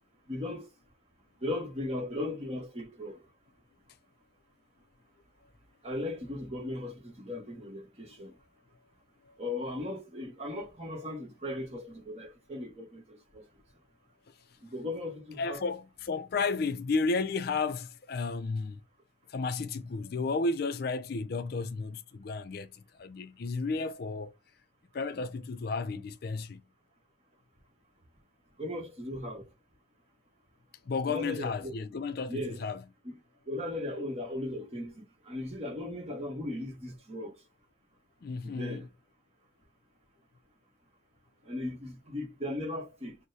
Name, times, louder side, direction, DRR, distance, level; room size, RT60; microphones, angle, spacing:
voice 1, 0.3-0.7 1.4-3.2 5.8-8.3 9.4-13.4 14.7-15.6 28.6-29.4 31.1-31.7 32.3-32.6 33.0-33.2 33.5-37.3 38.4-38.8 41.5-43.2, left 1 dB, 35° right, 1.1 m, -37 dB
voice 2, 15.4-18.8 19.3-24.3 24.9-26.6 30.9-32.8 38.2-38.9, left 4 dB, 55° left, 0.4 m, -33 dB
6.1 x 2.1 x 2.7 m
head